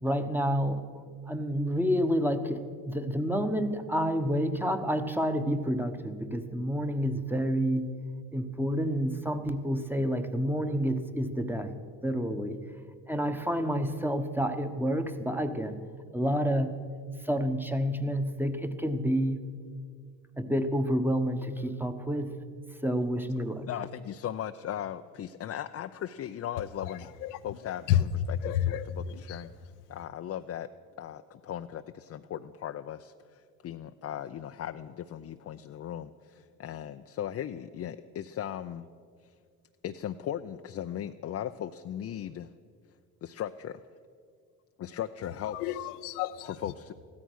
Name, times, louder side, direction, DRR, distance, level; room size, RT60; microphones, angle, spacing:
voice 1, 0.0-7.9 8.3-12.6 13.1-15.8 16.1-16.8 17.2-19.4 20.4-22.4 22.8-23.7, equal, 5° right, 8 dB, 1.0 m, -29 dB
voice 2, 23.7-27.0 27.4-27.8 28.3-28.8 29.1-29.5 29.9-30.7 31.0-38.9 39.8-42.5 43.2-43.8 44.8-45.6 46.6-46.9, left 10 dB, 35° left, 8 dB, 0.5 m, -37 dB
voice 3, 26.8-28.0 28.3-29.5 45.5-46.6, left 11 dB, 90° left, 10 dB, 0.8 m, -31 dB
15.5 x 13.5 x 6.4 m, 2.1 s
supercardioid pair, 85°, 44 cm